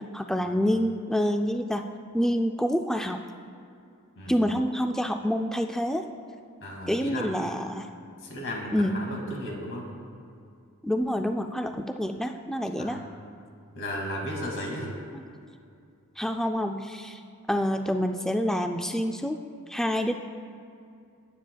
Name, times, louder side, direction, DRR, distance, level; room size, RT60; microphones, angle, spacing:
voice 1, 0.1-1.9 2.1-3.2 4.3-6.1 6.9-7.9 8.7-9.0 10.8-13.0 15.1-15.2 16.2-17.2 17.5-19.4 19.7-20.1, equal, ahead, 5 dB, 0.3 m, -27 dB
voice 2, 4.2-4.5 6.6-7.3 8.2-9.9 12.8-13.1 13.7-14.9, left 1 dB, 60° left, -1 dB, 2.2 m, -35 dB
19.5 x 8.8 x 2.3 m, 2.4 s
head